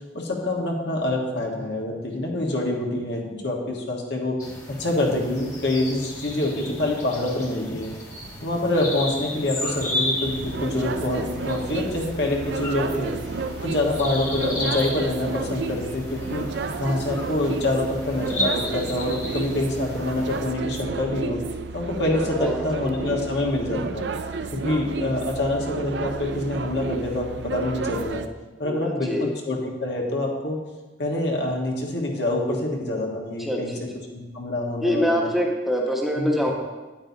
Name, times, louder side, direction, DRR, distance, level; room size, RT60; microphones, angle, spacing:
voice 1, 0.1-4.3 4.8-7.9 8.4-13.1 13.6-16.4 16.8-21.4 21.7-24.0 24.5-28.2 28.6-30.6 31.0-33.7 34.1-35.3 36.2-36.5, left 1 dB, 70° left, 0 dB, 1.4 m, -26 dB
sound 1, 4.4-20.5, left 1 dB, 20° left, 1.3 m, -34 dB
sound 2, 10.2-28.3, right 4 dB, 70° right, 0.4 m, -32 dB
voice 2, 22.3-23.1 28.6-29.3 33.4-33.6 34.8-36.5, equal, ahead, -1 dB, 1.0 m, -25 dB
9.4 x 8.9 x 2.8 m, 1.2 s
head